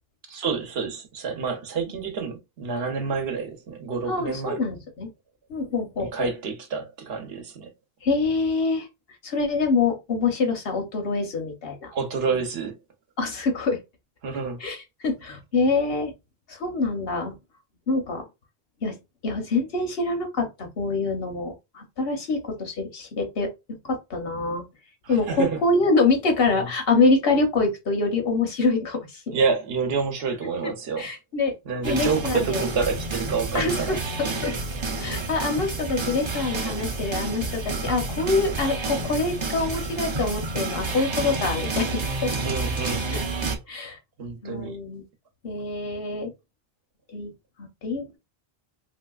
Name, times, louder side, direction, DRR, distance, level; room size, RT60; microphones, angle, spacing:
voice 1, 0.3-4.6 6.0-7.7 11.9-12.8 14.2-14.6 25.0-25.6 26.5-26.7 29.3-31.1 31.7-34.0 42.4-43.0 44.2-44.8, right 5 dB, 75° right, 0.9 m, -28 dB
voice 2, 4.1-5.1 5.5-6.3 8.0-8.9 9.2-11.9 12.3-12.4 13.2-13.8 14.6-16.1 16.5-17.3 17.9-18.2 18.8-19.0 19.2-24.6 25.1-29.4 31.0-31.5 31.8-32.6 33.5-34.5 35.0-42.3 43.1-43.2 43.7-44.0 44.4-45.0 45.4-46.3 47.1-47.3 47.6-48.2, left 3 dB, 70° left, 1.0 m, -25 dB
sound 1, 31.8-43.6, right 3 dB, 40° right, 0.4 m, -29 dB
3.1 x 2.7 x 2.3 m
omnidirectional pair, 1.0 m